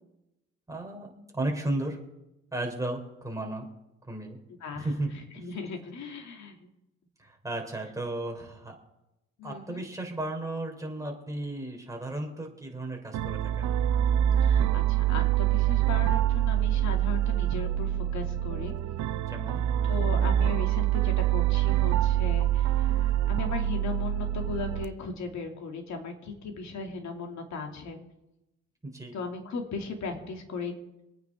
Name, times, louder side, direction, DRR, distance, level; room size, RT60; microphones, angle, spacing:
voice 1, 0.7-2.0 2.5-3.7 4.1-4.4 4.7-5.1 5.4-5.5 7.2-8.8 9.4-13.7 19.3-19.6 28.8-29.1, right 2 dB, 10° right, 1 dB, 3.4 m, -34 dB
voice 2, 5.4-6.7 9.4-9.9 14.4-18.7 19.8-28.0 29.1-30.7, left 4 dB, 65° left, 3 dB, 2.7 m, -37 dB
sound 1, 13.1-24.9, right 11 dB, 70° right, 0.7 m, -25 dB
24.5 x 9.3 x 3.7 m, 0.92 s
cardioid pair, 90°, 30 cm